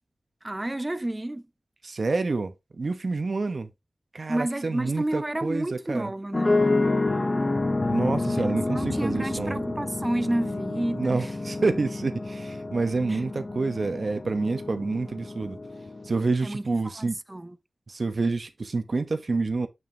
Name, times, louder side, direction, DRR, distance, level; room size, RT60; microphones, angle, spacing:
voice 1, 0.4-1.4 4.3-6.6 8.4-11.4 13.1-13.2 16.4-17.6, right 1 dB, 20° right, 0.4 m, -31 dB
voice 2, 1.8-3.7 4.1-6.1 7.9-9.6 11.0-15.6 16.1-17.2 17.9-19.7, right 3 dB, 55° right, 1.2 m, -28 dB
sound 1, 6.3-16.3, left 2 dB, 30° left, 0.9 m, -29 dB
7.3 x 6.1 x 2.9 m
wide cardioid pair, 105°, 0 cm